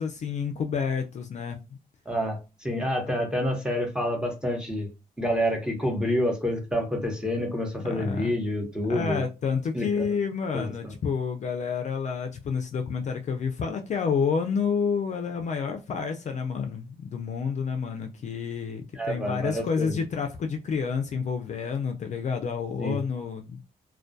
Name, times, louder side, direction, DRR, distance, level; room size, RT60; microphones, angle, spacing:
voice 1, 0.0-1.6 3.2-3.3 7.9-8.4 8.9-23.6, left 6 dB, 50° left, 0.4 m, -29 dB
voice 2, 2.1-4.9 5.2-9.2 9.7-10.1 10.5-10.9 19.0-20.0 22.8-23.0, equal, 5° right, 0.8 m, -28 dB
2.2 x 2.2 x 2.6 m
cardioid pair, 115°, 16 cm